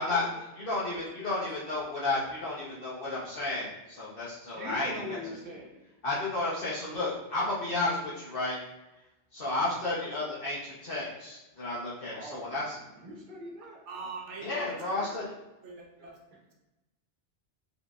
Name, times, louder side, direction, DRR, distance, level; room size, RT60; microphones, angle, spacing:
voice 1, 0.0-0.4 0.8-1.0 4.4-5.8 12.0-13.8 14.6-15.3 16.0-16.1, equal, 45° right, -2 dB, 1.0 m, -43 dB
voice 2, 0.6-4.9 6.0-8.6 9.3-12.7 14.4-15.3, left 2 dB, 55° left, -8 dB, 1.0 m, -32 dB
voice 3, 13.9-14.8 15.0-15.3 15.6-16.2, right 3 dB, 85° right, 0 dB, 1.0 m, -42 dB
4.3 x 3.0 x 2.3 m, 1.0 s
omnidirectional pair, 1.2 m